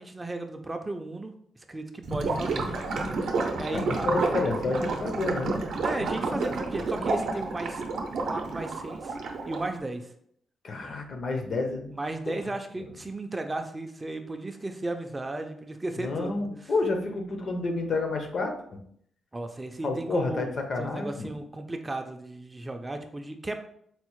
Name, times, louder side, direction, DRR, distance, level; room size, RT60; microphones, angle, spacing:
voice 1, 0.0-1.3 1.7-2.7 3.6-4.5 5.8-7.8 8.2-9.2 9.4-10.1 11.9-16.7 19.3-20.5 20.8-23.5, right 2 dB, 20° right, 5 dB, 0.3 m, -35 dB
Gurgling / Liquid, 2.0-9.8, right 3 dB, 75° right, 0.5 m, -30 dB
voice 2, 3.7-5.6 10.6-11.9 12.3-12.4 12.8-12.9 16.0-18.6 19.8-21.3, left 3 dB, 55° left, 5 dB, 0.5 m, -30 dB
4.2 x 2.0 x 3.0 m, 0.67 s
cardioid pair, 105°, 0 cm